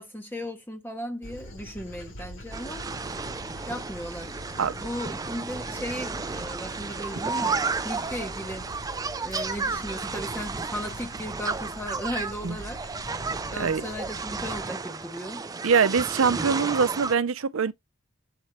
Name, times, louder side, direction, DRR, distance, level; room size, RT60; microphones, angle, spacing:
voice 1, 0.0-2.8 3.7-4.5 4.8-8.7 9.2-12.8 13.5-15.4, equal, 10° left, 0.8 m, -36 dB
Dog, 1.2-14.6, left 1 dB, 70° left, 2.9 m, -44 dB
sound 1, 2.5-17.2, right 4 dB, 15° right, 0.4 m, -33 dB
voice 2, 15.6-17.7, right 5 dB, 80° right, 0.6 m, -23 dB
7.6 x 4.2 x 3.0 m
head